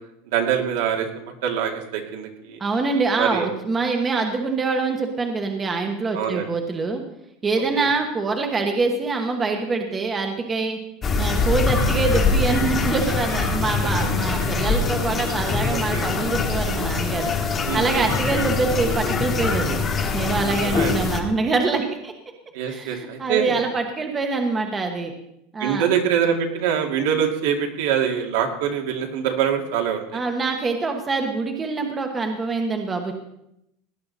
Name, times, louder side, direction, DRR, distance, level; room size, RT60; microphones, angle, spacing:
voice 1, 0.3-2.6 3.2-3.5 6.1-6.5 7.8-7.9 15.7-16.1 17.7-18.1 20.6-21.1 22.5-23.6 25.6-30.2, right 8 dB, 75° right, 2 dB, 2.4 m, -24 dB
voice 2, 2.6-7.0 7.4-10.8 11.2-19.8 20.1-22.1 22.7-25.1 25.5-25.9 30.1-33.1, right 4 dB, 15° right, 4 dB, 1.3 m, -25 dB
sound 1, 11.0-21.2, left 4 dB, 20° left, 1.5 m, -23 dB
18.0 x 10.5 x 4.2 m, 0.79 s
supercardioid pair, 165°, 0 cm